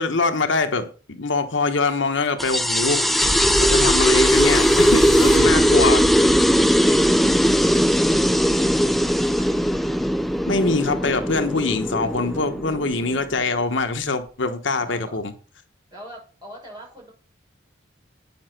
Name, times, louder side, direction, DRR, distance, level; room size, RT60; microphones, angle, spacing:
voice 1, 0.0-6.4 10.5-15.3, left 3 dB, 70° left, 8 dB, 1.2 m, -24 dB
sound 1, 2.4-13.4, equal, ahead, 0.4 m, -19 dB
sound 2, 3.2-12.0 12.7-12.8, left 1 dB, 40° left, 1.7 m, -31 dB
voice 2, 6.7-9.7 14.7-15.2 15.9-17.1, right 1 dB, 20° right, -2 dB, 6.3 m, -44 dB
9.0 x 7.2 x 5.9 m, 0.37 s
head